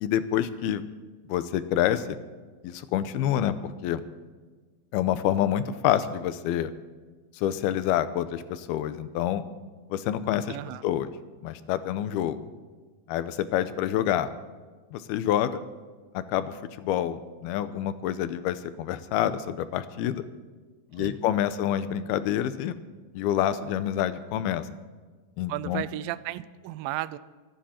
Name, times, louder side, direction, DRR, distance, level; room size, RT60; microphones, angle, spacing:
voice 1, 0.0-0.8 1.3-2.2 2.6-4.0 4.9-6.7 7.3-9.4 9.9-10.6 10.8-11.1 11.4-12.4 13.1-14.3 14.9-15.6 16.1-20.3 20.9-22.8 23.1-24.7 25.4-25.9, left 11 dB, 90° left, 12 dB, 2.8 m, -27 dB
voice 2, 10.5-10.8 20.9-21.2 25.5-27.2, right 15 dB, 80° right, 16 dB, 2.2 m, -34 dB
25.0 x 10.0 x 4.4 m, 1.4 s
omnidirectional pair, 4.3 m